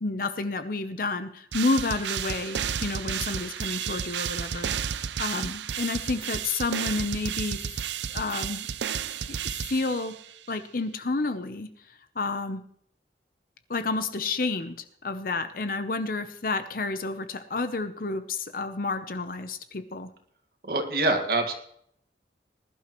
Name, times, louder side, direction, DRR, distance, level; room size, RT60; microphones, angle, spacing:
voice 1, 0.0-4.7 5.2-7.6 8.1-8.7 9.3-10.1 10.5-11.7 12.2-12.6 13.7-20.1, left 3 dB, 50° left, 9 dB, 0.7 m, -30 dB
sound 1, 1.5-10.3, right 8 dB, 85° right, 0.5 m, -32 dB
voice 2, 20.6-21.5, right 2 dB, 60° right, 3 dB, 1.9 m, -25 dB
20.0 x 11.5 x 3.1 m, 0.67 s
head